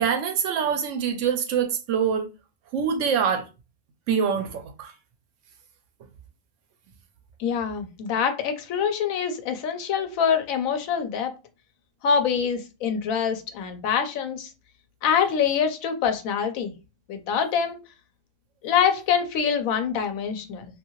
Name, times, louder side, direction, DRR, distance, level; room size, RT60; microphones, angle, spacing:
voice 1, 0.0-2.3 2.7-3.4 4.1-4.9, right 7 dB, 70° right, 0.9 m, -24 dB
voice 2, 7.4-11.3 12.0-14.5 15.0-16.7 17.1-17.8 18.6-20.7, left 7 dB, 90° left, 1.1 m, -25 dB
2.7 x 2.6 x 2.8 m
omnidirectional pair, 1.4 m